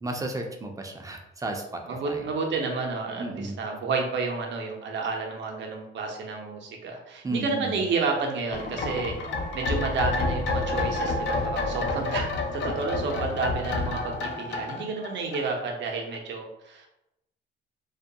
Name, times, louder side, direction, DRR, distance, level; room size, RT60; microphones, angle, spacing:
voice 1, 0.0-2.2 3.2-3.6 7.2-7.7, right 2 dB, 15° right, 3 dB, 0.4 m, -33 dB
voice 2, 1.9-9.1 9.5-16.9, right 4 dB, 65° right, 1 dB, 0.6 m, -30 dB
sound 1, 8.5-15.9 16.1-16.2, left 3 dB, 65° left, 0.4 m, -29 dB
2.3 x 2.2 x 2.7 m, 0.87 s
cardioid pair, 90°, 20 cm